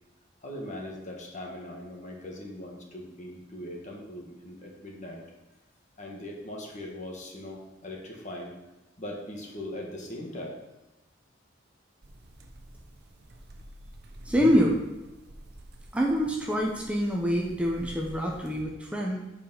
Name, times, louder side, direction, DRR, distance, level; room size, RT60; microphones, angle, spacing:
voice 1, 0.4-5.2 6.0-8.5 9.0-10.6, left 1 dB, 40° left, -1 dB, 1.7 m, -40 dB
sound 1, 12.0-18.6, right 1 dB, 55° right, 0.9 m, -47 dB
voice 2, 14.2-14.8 15.9-19.2, equal, 5° right, -2 dB, 0.9 m, -25 dB
7.5 x 5.2 x 5.6 m, 1.0 s
head